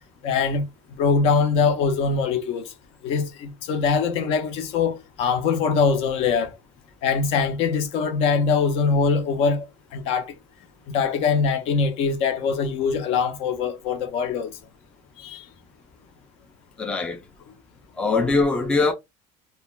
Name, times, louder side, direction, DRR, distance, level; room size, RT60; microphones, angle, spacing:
voice 1, 0.2-0.7 1.0-2.7 3.0-6.5 7.0-9.7 9.9-10.3 10.9-14.5 15.2-15.4, left 5 dB, 60° left, 0.6 m, -22 dB
voice 2, 16.8-17.2 18.0-18.9, left 3 dB, 10° left, 0.3 m, -22 dB
2.3 x 2.1 x 3.0 m
cardioid pair, 170°, 12 cm